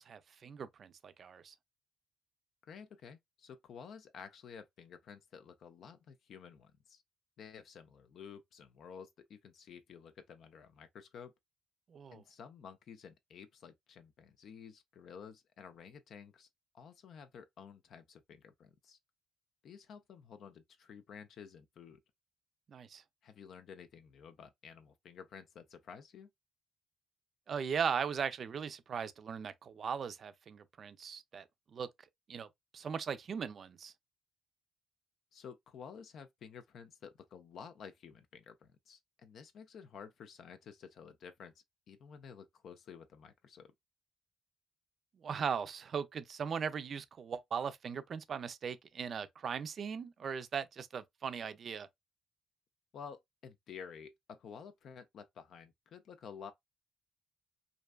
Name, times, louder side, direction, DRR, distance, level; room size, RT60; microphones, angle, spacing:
voice 1, 0.0-1.5 11.9-12.2 22.7-23.0 27.5-31.5 31.7-31.9 32.3-32.5 32.7-33.9 45.2-51.9, right 6 dB, 55° right, 0.3 m, -38 dB
voice 2, 2.6-7.0 7.4-11.3 12.1-16.5 16.7-19.0 19.6-22.0 23.2-26.3 35.3-41.5 41.9-43.7 52.9-56.5, left 7 dB, 65° left, 0.4 m, -52 dB
2.5 x 2.2 x 2.2 m
cardioid pair, 90°, 0 cm